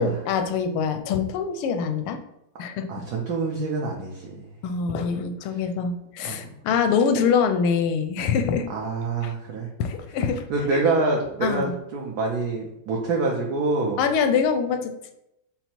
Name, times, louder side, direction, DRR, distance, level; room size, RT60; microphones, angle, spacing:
voice 1, 0.0-2.2 2.6-2.8 4.6-8.7 9.2-9.3 9.8-10.4 10.7-10.8 11.4-11.8 14.0-15.1, left 6 dB, 85° left, 7 dB, 1.5 m, -24 dB
voice 2, 2.9-4.4 6.2-6.5 8.7-9.7 10.5-14.0, right 3 dB, 75° right, -1 dB, 0.9 m, -26 dB
5.5 x 2.1 x 4.3 m, 0.83 s
omnidirectional pair, 2.3 m